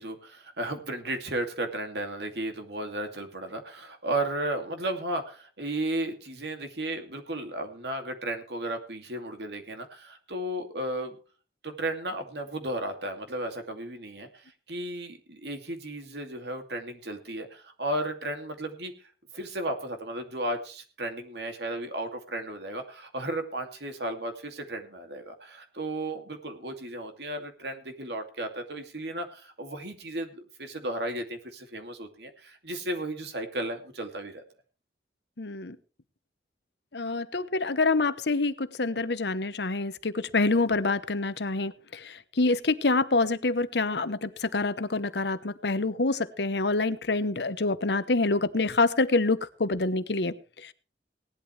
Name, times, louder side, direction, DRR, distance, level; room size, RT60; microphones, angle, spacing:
voice 1, 0.0-11.2 11.6-19.1 19.3-34.4, right 1 dB, 75° right, 6 dB, 2.5 m, -34 dB
voice 2, 35.4-35.8 36.9-50.7, left 3 dB, 75° left, 13 dB, 1.0 m, -26 dB
18.0 x 11.5 x 3.3 m, 0.36 s
head